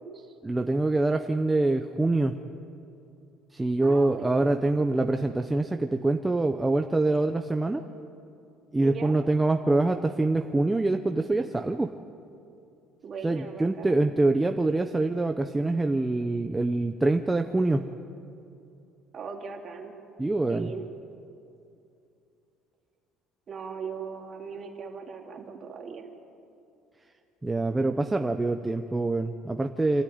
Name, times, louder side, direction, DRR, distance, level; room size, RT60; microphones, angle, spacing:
voice 1, 0.4-2.4 3.5-7.8 8.7-11.9 13.2-17.9 20.2-20.7 27.4-30.0, right 2 dB, 10° right, 5 dB, 0.6 m, -25 dB
voice 2, 3.8-4.6 8.8-9.1 13.0-14.1 19.1-19.9 20.5-20.9 23.5-26.1, right 5 dB, 30° right, 1 dB, 2.6 m, -39 dB
27.0 x 13.5 x 9.5 m, 2.6 s
cardioid pair, 155°, 0 cm